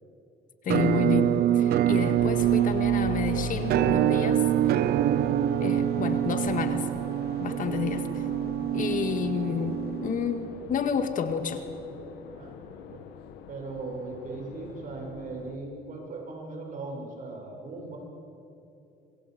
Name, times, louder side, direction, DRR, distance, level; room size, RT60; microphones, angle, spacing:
voice 1, 0.6-4.5 5.6-6.9 7.4-8.1 8.7-11.7, left 7 dB, 50° left, 8 dB, 1.9 m, -30 dB
Musical instrument, 0.7-10.5, right 12 dB, 65° right, 0.7 m, -25 dB
sound 1, 2.2-15.6, left 9 dB, 85° left, 1.5 m, -42 dB
voice 2, 4.8-5.4 7.3-7.9 12.2-13.0 13.5-18.0, right 3 dB, 50° right, 0 dB, 6.9 m, -39 dB
26.5 x 22.0 x 8.0 m, 2.9 s
cardioid pair, 110°, 17 cm